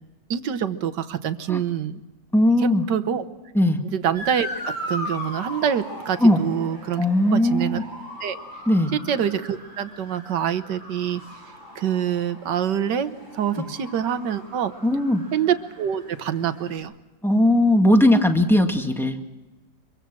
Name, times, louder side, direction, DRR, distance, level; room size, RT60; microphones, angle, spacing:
voice 1, 0.3-2.0 2.6-3.2 3.9-7.1 7.3-7.8 8.2-8.4 8.9-11.2 11.8-14.7 15.3-16.9, right 9 dB, 75° right, 11 dB, 1.7 m, -26 dB
voice 2, 2.3-2.8 3.5-3.8 6.2-6.4 7.0-7.8 8.7-8.9 13.6-13.7 14.8-15.3 17.2-19.2, left 1 dB, ahead, 4 dB, 1.8 m, -18 dB
Motor vehicle (road) / Siren, 4.1-16.8, equal, 40° left, 6.8 m, -38 dB
25.0 x 23.5 x 6.2 m, 1.1 s
omnidirectional pair, 1.9 m